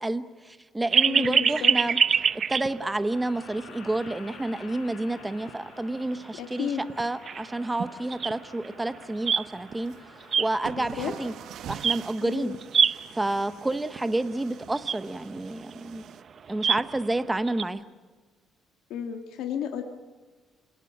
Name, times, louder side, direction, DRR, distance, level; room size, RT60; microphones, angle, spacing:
voice 1, 0.0-2.0 2.5-9.9 10.4-11.3 11.7-12.5 13.1-16.0 16.5-17.8, right 2 dB, 10° right, 11 dB, 0.9 m, -29 dB
sound 1, 0.9-3.1 3.5-3.6 4.1-4.2 5.5-5.6 6.1-6.2 6.5-6.6 6.9-9.8 10.2-11.5 11.7-12.2 12.5-13.4 14.0-14.1 14.3-14.4 14.6-17.6, right 6 dB, 40° right, 0.7 m, -25 dB
voice 2, 1.0-1.7 6.4-6.8 10.8-11.1 12.2-12.6 18.9-19.8, left 9 dB, 80° left, 4 dB, 1.7 m, -33 dB
sound 2, 3.1-11.4, left 5 dB, 55° left, 4.7 m, -50 dB
sound 3, 9.9-10.0 10.6-16.2, right 9 dB, 65° right, 1.0 m, -44 dB
28.0 x 18.5 x 7.4 m, 1.5 s
cardioid pair, 145°, 0 cm